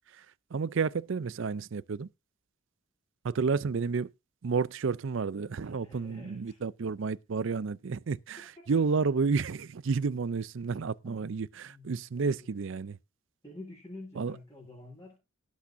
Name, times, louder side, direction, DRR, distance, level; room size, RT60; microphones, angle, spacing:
voice 1, 0.5-2.1 3.2-4.1 4.4-13.0 14.2-14.4, right 5 dB, 60° right, 0.4 m, -31 dB
voice 2, 5.6-6.6 8.7-8.8 11.0-11.3 11.6-12.5 13.4-15.2, left 2 dB, 15° left, 7.1 m, -49 dB
18.0 x 8.4 x 2.6 m
head